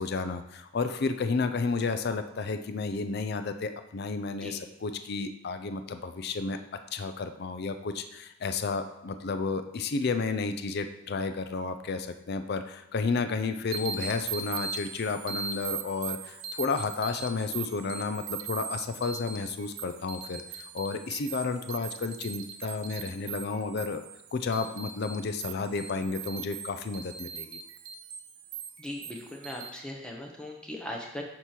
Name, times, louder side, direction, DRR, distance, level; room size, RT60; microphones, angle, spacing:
voice 1, 0.0-6.6 6.9-24.0 24.3-27.6, left 4 dB, 50° left, 8 dB, 0.4 m, -32 dB
sound 1, 13.7-29.7, right 7 dB, 80° right, 0.6 m, -40 dB
voice 2, 28.8-31.2, left 1 dB, 5° left, 0 dB, 0.8 m, -39 dB
7.9 x 3.0 x 5.9 m, 0.89 s
head